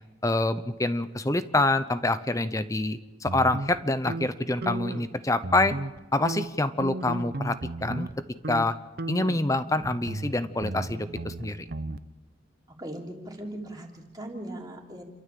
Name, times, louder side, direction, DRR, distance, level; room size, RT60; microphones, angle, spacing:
voice 1, 0.2-5.8 6.1-8.1 8.5-8.8 9.1-11.6, left 2 dB, 20° left, 12 dB, 0.8 m, -26 dB
sound 1, 3.3-5.1 5.4-6.0 6.3-8.1 8.4-8.7 9.0-12.0, right 2 dB, 55° right, 0.8 m, -35 dB
voice 2, 12.8-15.0, right 1 dB, 20° right, -1 dB, 3.3 m, -39 dB
29.0 x 13.5 x 7.6 m, 1.1 s
head